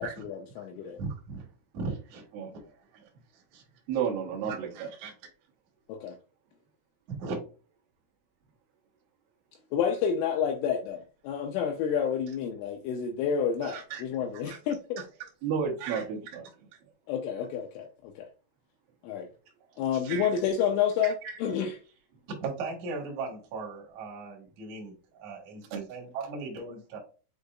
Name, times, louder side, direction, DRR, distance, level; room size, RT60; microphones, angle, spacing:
voice 1, 0.0-1.0 5.9-6.2 9.7-11.0 11.2-15.0 17.1-18.3 19.0-19.3 19.8-21.1 21.4-21.7, left 7 dB, 80° left, 2.9 m, -29 dB
voice 2, 1.0-1.4 1.7-2.3 2.5-2.6 2.9-3.0 3.3-3.6 4.4-5.1 7.2-7.4 13.6-14.0 14.3-14.6 15.0-15.3 15.8-16.0 19.7-20.3 21.0-21.4 22.4-27.0, right 4 dB, 65° right, 1.9 m, -38 dB
voice 3, 3.9-4.9 15.4-16.4 25.7-25.8, right 7 dB, 80° right, 2.0 m, -31 dB
7.8 x 2.7 x 2.4 m
omnidirectional pair, 5.8 m